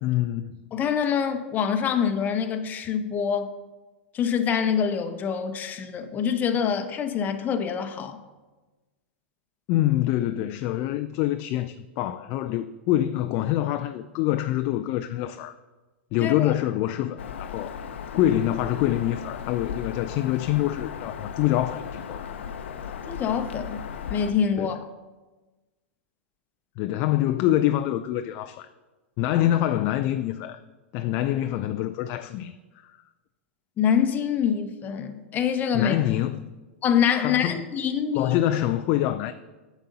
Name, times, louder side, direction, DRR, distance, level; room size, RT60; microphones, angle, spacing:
voice 1, 0.0-0.7 9.7-15.5 16.1-17.7 18.1-22.3 24.6-24.8 26.8-28.7 29.2-30.6 30.9-32.5 32.8-33.0 35.7-36.5 37.2-37.6 38.1-39.3, left 13 dB, 45° left, 0.4 m, -25 dB
voice 2, 0.7-3.5 4.1-8.2 16.2-16.5 23.1-23.8 24.1-24.9 33.8-36.0 36.8-38.4, left 7 dB, 25° left, 0.8 m, -25 dB
Bird vocalization bird call bird song, 17.2-24.3, left 7 dB, 70° left, 0.7 m, -36 dB
8.9 x 4.1 x 6.6 m
hypercardioid pair, 110°, 7 cm